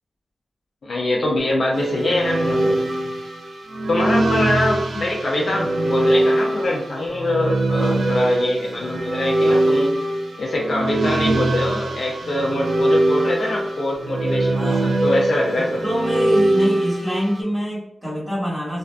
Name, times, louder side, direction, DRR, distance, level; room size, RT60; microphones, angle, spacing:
voice 1, 0.8-2.8 3.9-9.9 10.4-15.8, left 1 dB, 65° left, -2 dB, 0.5 m, -23 dB
sound 1, 1.7-17.4, right 1 dB, 90° right, 0.5 m, -22 dB
voice 2, 2.7-3.1 7.7-8.1 14.5-15.0 15.5-18.8, equal, ahead, -8 dB, 1.5 m, -26 dB
2.4 x 2.3 x 2.2 m, 0.81 s
wide cardioid pair, 85°, 0 cm